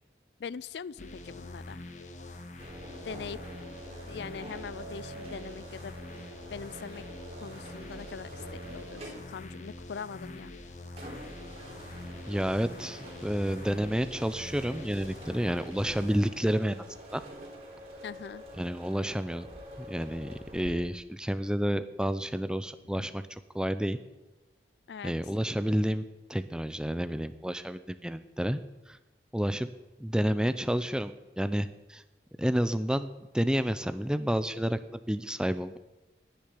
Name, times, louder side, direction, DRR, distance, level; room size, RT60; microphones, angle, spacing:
voice 1, 0.4-1.8 3.0-3.4 4.1-6.0 6.5-7.1 7.4-10.5 18.0-18.4 23.0-23.1 24.9-25.1, left 6 dB, 75° left, 21 dB, 0.4 m, -42 dB
sound 1, 1.0-16.5, left 2 dB, 40° left, 1.4 m, -45 dB
sound 2, 2.6-20.7, right 1 dB, 35° right, 3.8 m, -47 dB
voice 2, 12.3-16.8 17.1-17.2 18.6-19.5 19.8-23.2 23.5-24.0 25.0-26.0 26.3-28.6 28.9-29.0 29.3-29.7 30.0-32.0 32.4-35.8, equal, 5° right, 11 dB, 0.6 m, -30 dB
11.0 x 10.5 x 10.0 m, 1.1 s
head